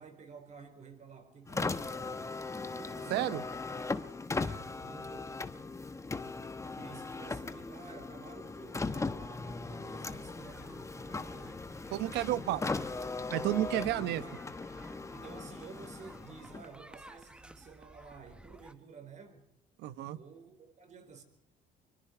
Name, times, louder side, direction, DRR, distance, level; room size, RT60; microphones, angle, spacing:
voice 1, 0.0-2.4 2.7-3.3 4.4-5.3 6.6-11.7 12.0-12.2 13.7-14.4 15.1-19.5 20.1-21.2, right 5 dB, 45° right, 4.6 m, -52 dB
Car, 1.4-16.9, left 3 dB, 15° left, 1.2 m, -39 dB
voice 2, 3.1-3.4 11.9-12.6 13.3-14.2 19.8-20.2, right 14 dB, 85° right, 1.0 m, -31 dB
sound 1, 10.4-18.7, right 1 dB, 5° right, 1.1 m, -55 dB
24.5 x 24.0 x 4.7 m
cardioid pair, 110°, 17 cm